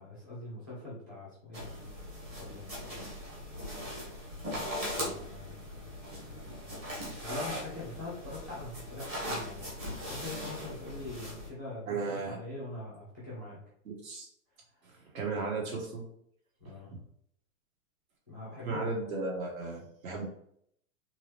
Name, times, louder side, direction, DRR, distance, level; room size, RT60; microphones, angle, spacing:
voice 1, 0.0-1.7 2.3-2.9 4.7-5.6 7.2-13.6 16.6-16.9 18.3-18.8, left 2 dB, 15° left, -8 dB, 0.4 m, -43 dB
sound 1, 1.5-11.5, equal, 15° right, 0.9 m, -39 dB
voice 2, 11.9-12.4 13.8-14.3 14.8-16.0 16.6-16.8 18.6-20.3, right 3 dB, 70° right, -1 dB, 1.6 m, -35 dB
3.9 x 2.9 x 3.2 m, 0.69 s
hypercardioid pair, 175°, 42 cm